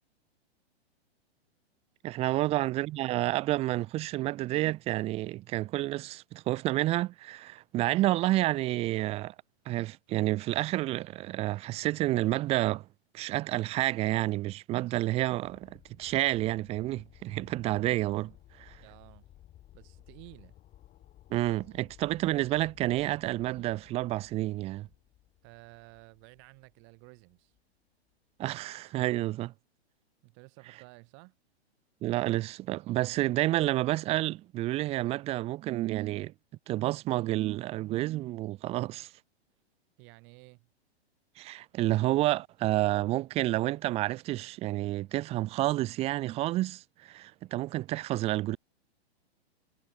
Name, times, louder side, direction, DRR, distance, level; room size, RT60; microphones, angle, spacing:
voice 1, 2.0-9.3 9.7-12.8 13.1-18.3 18.6-18.8 21.3-24.9 28.4-29.5 32.0-36.3 36.7-39.1 41.4-48.6, right 16 dB, 20° right, 0.6 m, -29 dB
sound 1, 14.8-27.6 28.1-28.2, left 13 dB, 25° left, 3.4 m, -57 dB
voice 2, 18.8-19.3 19.7-20.5 25.4-27.5 30.2-31.3 40.0-40.7, right 32 dB, 35° right, 4.8 m, -53 dB
figure-of-eight pair, 110°, 33 cm